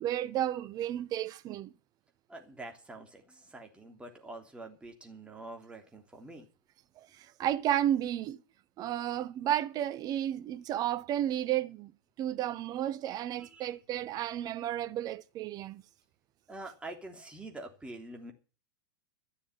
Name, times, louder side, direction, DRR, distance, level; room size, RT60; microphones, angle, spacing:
voice 1, 0.0-1.7 7.4-8.4 8.8-11.9 12.2-15.8, right 11 dB, 35° right, 1.0 m, -32 dB
voice 2, 2.3-6.5 13.4-13.7 16.5-18.3, right 2 dB, 10° right, 3.3 m, -46 dB
14.0 x 7.1 x 9.3 m
figure-of-eight pair, 95°, 12 cm